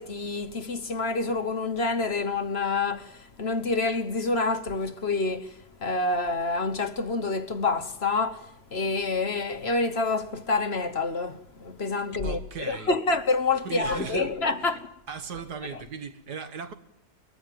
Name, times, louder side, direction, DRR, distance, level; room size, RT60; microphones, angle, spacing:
voice 1, 0.0-5.5 5.8-14.9, left 3 dB, 45° left, 1.4 m, -27 dB
voice 2, 12.2-12.9 13.6-14.8 15.1-16.7, right 6 dB, 85° right, 2.2 m, -38 dB
23.0 x 21.0 x 7.6 m
omnidirectional pair, 1.7 m